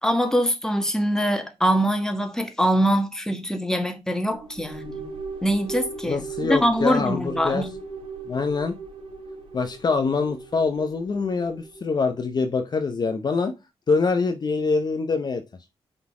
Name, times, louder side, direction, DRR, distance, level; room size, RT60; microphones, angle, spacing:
voice 1, 0.0-5.1 5.4-7.7, equal, 5° left, 1.5 m, -23 dB
sound 1, 4.3-11.9, right 4 dB, 55° right, 2.6 m, -38 dB
voice 2, 6.0-7.7 8.3-8.8 9.5-13.5 13.9-15.4, left 4 dB, 40° left, 0.7 m, -24 dB
5.9 x 3.9 x 4.9 m
cardioid pair, 85°, 11 cm